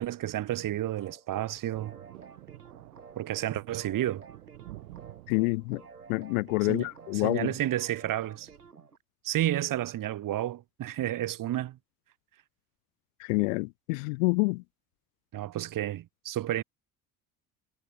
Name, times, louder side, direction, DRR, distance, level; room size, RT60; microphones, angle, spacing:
voice 1, 0.0-1.9 3.2-4.2 6.7-8.5 9.2-11.8 15.3-16.6, right 13 dB, 45° right, 1.9 m, -31 dB
sound 1, 1.0-9.0, right 5 dB, 90° right, 1.8 m, -52 dB
Thunder, 1.7-8.7, right 19 dB, 70° right, 5.1 m, -51 dB
voice 2, 5.3-5.8 6.1-7.5 13.2-14.6, left 27 dB, 65° left, 0.8 m, -27 dB
figure-of-eight pair, 55°, 45 cm